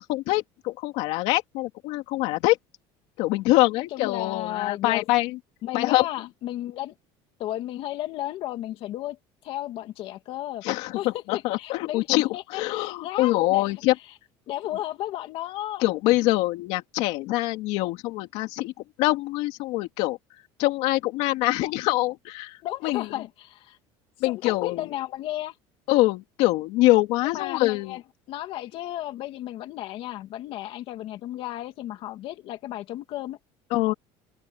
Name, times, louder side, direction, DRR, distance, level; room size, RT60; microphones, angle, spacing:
voice 1, 0.0-2.6 3.2-5.4 5.7-6.0 10.6-13.9 15.8-18.7 19.0-20.2 20.6-22.6 22.8-23.0 24.2-24.8 25.9-28.0 33.7-33.9, left 19 dB, 75° left, 2.4 m, -24 dB
voice 2, 3.9-5.0 5.6-6.9 7.4-9.2 9.4-10.6 10.9-13.7 14.5-15.8 21.6-21.7 22.6-23.8 24.2-25.5 27.2-28.0 28.3-33.4, left 14 dB, 55° left, 2.4 m, -34 dB
open air
cardioid pair, 145°, 11 cm